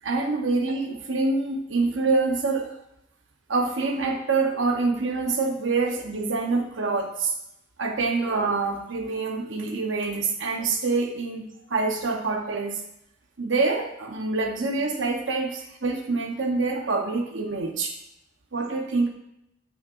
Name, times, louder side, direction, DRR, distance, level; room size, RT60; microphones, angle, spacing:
voice 1, 0.0-2.7 3.5-7.3 7.8-12.8 13.4-17.9 18.5-19.1, right 3 dB, 70° right, 2 dB, 1.0 m, -26 dB
7.3 x 5.9 x 2.5 m, 0.83 s
head